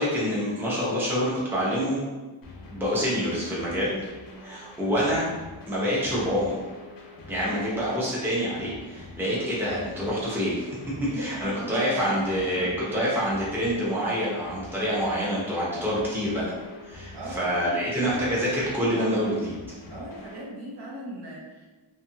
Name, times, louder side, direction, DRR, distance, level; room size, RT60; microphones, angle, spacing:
voice 1, 0.0-2.0 2.7-4.0 4.4-5.3 5.7-6.6 7.3-10.7 11.0-16.5 16.8-19.5, equal, 5° right, -7 dB, 0.7 m, -26 dB
sound 1, 2.4-20.4, left 2 dB, 45° left, 0.6 m, -45 dB
voice 2, 11.1-13.4 17.1-18.5 19.9-21.7, right 1 dB, 55° right, -5 dB, 0.8 m, -39 dB
2.8 x 2.4 x 2.7 m, 1.2 s
wide cardioid pair, 125°, 48 cm